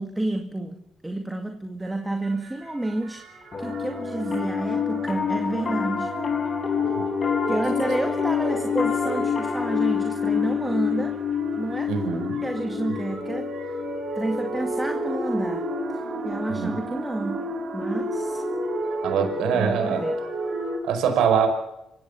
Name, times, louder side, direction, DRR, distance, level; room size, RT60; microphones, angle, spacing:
voice 1, 0.0-6.1 7.5-11.2 11.6-12.0 12.4-13.9 14.2-15.7 15.9-17.4 17.7-18.5 19.5-20.2, right 1 dB, 10° right, 2.1 m, -30 dB
sound 1, 1.8-20.8, right 1 dB, 65° right, 6.9 m, -33 dB
Piano, 3.5-15.0, left 7 dB, 40° left, 3.9 m, -27 dB
voice 2, 11.9-12.4 16.5-16.8 19.0-20.0 20.8-21.5, right 7 dB, 85° right, 5.1 m, -23 dB
27.0 x 16.0 x 7.1 m
cardioid pair, 80°, 0 cm